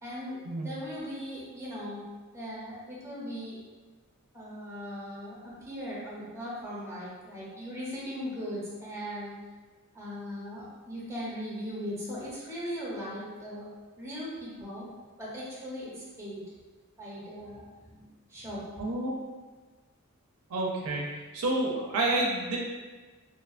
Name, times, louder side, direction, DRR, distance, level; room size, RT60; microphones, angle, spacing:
voice 1, 0.0-2.0 2.3-3.6 4.3-9.4 9.9-13.7 14.0-14.9 15.2-16.4 17.0-18.0 18.3-18.7, equal, 15° right, -7 dB, 0.7 m, -39 dB
voice 2, 18.8-19.1 20.5-21.1 21.3-22.6, right 2 dB, 70° right, -2 dB, 0.4 m, -29 dB
2.6 x 2.3 x 2.4 m, 1.3 s
head